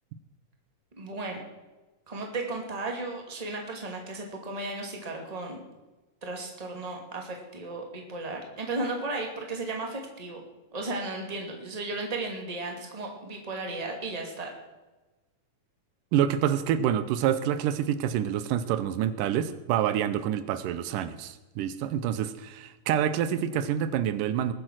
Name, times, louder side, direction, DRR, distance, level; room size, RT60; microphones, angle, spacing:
voice 1, 0.9-1.4 2.1-5.7 6.2-10.4 10.7-14.5, right 2 dB, 15° right, 2 dB, 1.9 m, -35 dB
voice 2, 16.1-24.5, right 10 dB, 85° right, 12 dB, 2.4 m, -27 dB
20.5 x 7.9 x 6.3 m, 1.1 s
omnidirectional pair, 3.8 m